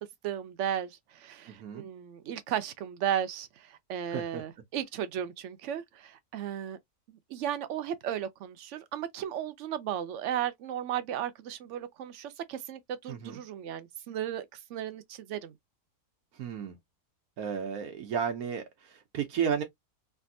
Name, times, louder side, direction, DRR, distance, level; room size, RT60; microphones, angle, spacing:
voice 1, 0.2-6.8 7.1-15.5, right 10 dB, 65° right, 0.9 m, -35 dB
voice 2, 1.5-1.9 4.1-4.4 13.1-13.4 16.3-16.8 17.4-19.6, right 7 dB, 90° right, 1.2 m, -33 dB
3.3 x 2.6 x 2.6 m
omnidirectional pair, 1.5 m